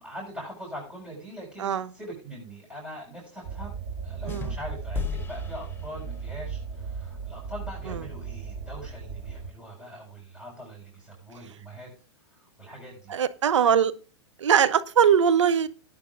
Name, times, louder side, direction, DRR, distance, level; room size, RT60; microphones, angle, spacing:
voice 1, 0.0-3.7 4.0-11.9 12.3-13.2, equal, 5° right, -3 dB, 7.6 m, -42 dB
sound 1, 3.4-9.5, right 6 dB, 45° right, 5.6 m, -36 dB
sound 2, 4.3-6.5, left 7 dB, 15° left, 0.9 m, -37 dB
voice 2, 13.1-13.9 14.4-15.7, right 8 dB, 75° right, 14 dB, 0.7 m, -21 dB
18.0 x 9.9 x 2.5 m, 0.34 s
hypercardioid pair, 110°, 15 cm